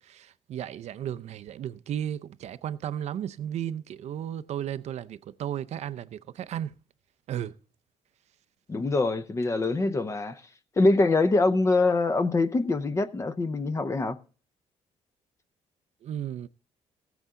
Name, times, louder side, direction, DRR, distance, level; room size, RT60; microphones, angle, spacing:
voice 1, 0.0-6.8 7.3-7.6 16.0-16.5, right 10 dB, 60° right, 0.5 m, -34 dB
voice 2, 8.7-10.4 10.8-14.2, left 3 dB, 25° left, 0.7 m, -24 dB
15.5 x 8.1 x 3.7 m
cardioid pair, 155°, 13 cm